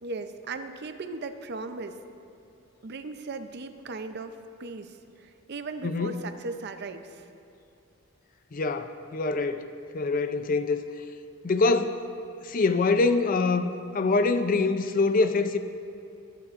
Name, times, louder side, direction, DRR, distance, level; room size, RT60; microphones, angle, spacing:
voice 1, 0.0-2.0 2.8-7.3, right 3 dB, 50° right, 8 dB, 0.6 m, -37 dB
voice 2, 5.8-6.2 8.5-10.8 11.4-12.0 12.4-15.6, left 3 dB, 40° left, 9 dB, 0.4 m, -25 dB
22.0 x 9.8 x 2.5 m, 2.6 s
head